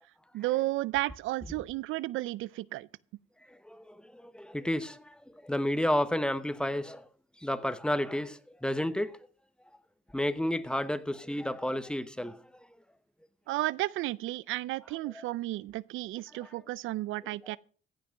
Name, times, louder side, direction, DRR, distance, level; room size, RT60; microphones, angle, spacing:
voice 1, 0.3-2.9 13.5-17.6, right 17 dB, 85° right, 0.4 m, -33 dB
voice 2, 3.4-7.1 7.4-9.2 10.1-12.7 15.1-15.3 16.3-16.5 17.4-17.6, left 1 dB, 5° left, 0.9 m, -32 dB
15.5 x 6.0 x 6.6 m
cardioid pair, 90°, 20 cm